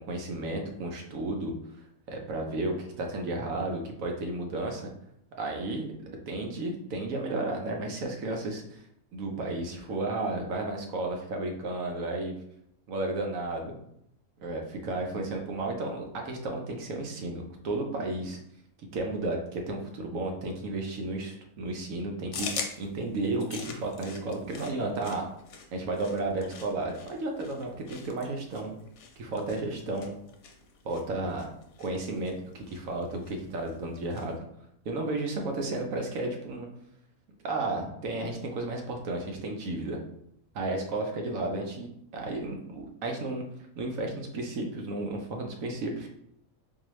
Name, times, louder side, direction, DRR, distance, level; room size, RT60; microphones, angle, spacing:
voice 1, 0.1-1.5 2.1-4.9 5.4-5.9 6.3-8.8 9.1-12.4 12.9-13.8 14.4-18.4 18.9-25.3 25.7-28.7 29.2-30.1 30.8-31.5 31.8-34.4 34.8-36.7 37.4-40.0 40.5-43.4 43.8-46.1, right 2 dB, 75° right, 2 dB, 1.1 m, -33 dB
sound 1, 22.3-34.3, left 5 dB, 65° left, 0.8 m, -44 dB
3.9 x 2.7 x 3.0 m, 0.75 s
omnidirectional pair, 1.5 m